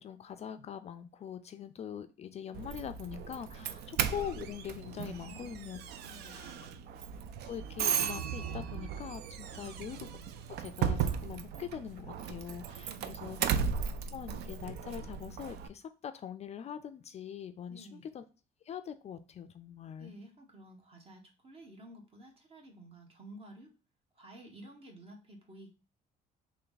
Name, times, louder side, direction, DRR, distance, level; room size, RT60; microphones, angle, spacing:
voice 1, 0.0-5.8 6.2-6.7 7.5-10.1 10.6-13.4 14.1-18.2 18.6-20.1, left 9 dB, 40° left, 10 dB, 0.3 m, -43 dB
Doorbell, 2.5-15.7, right 8 dB, 75° right, 0.4 m, -36 dB
voice 2, 3.6-3.9 5.2-5.6 6.0-6.8 9.6-9.9 12.8-13.5 17.7-18.1 20.0-23.7 24.1-25.7, right 1 dB, 35° right, 3 dB, 1.2 m, -53 dB
3.3 x 3.1 x 3.9 m, 0.34 s
cardioid pair, 110°, 17 cm